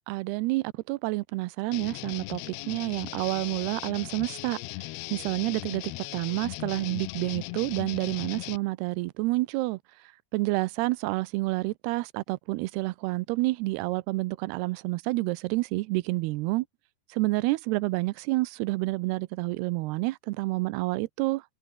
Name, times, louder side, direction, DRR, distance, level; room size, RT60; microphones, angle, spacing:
voice 1, 0.1-4.6 5.1-9.8 10.3-16.7 17.1-21.4, right 21 dB, 85° right, 2.6 m, -29 dB
sound 1, 1.7-8.6, left 22 dB, 80° left, 2.6 m, -38 dB
omnidirectional pair, 4.8 m